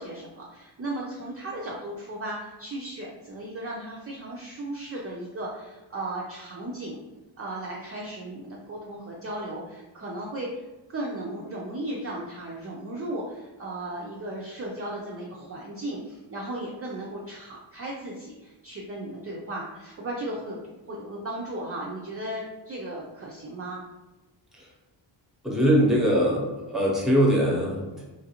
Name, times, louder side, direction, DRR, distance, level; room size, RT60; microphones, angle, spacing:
voice 1, 0.0-7.0 7.4-20.6 20.9-23.8, right 1 dB, 35° right, -4 dB, 0.4 m, -36 dB
voice 2, 25.4-28.0, equal, ahead, -3 dB, 0.7 m, -22 dB
3.1 x 2.5 x 2.8 m, 1.1 s
wide cardioid pair, 135°, 46 cm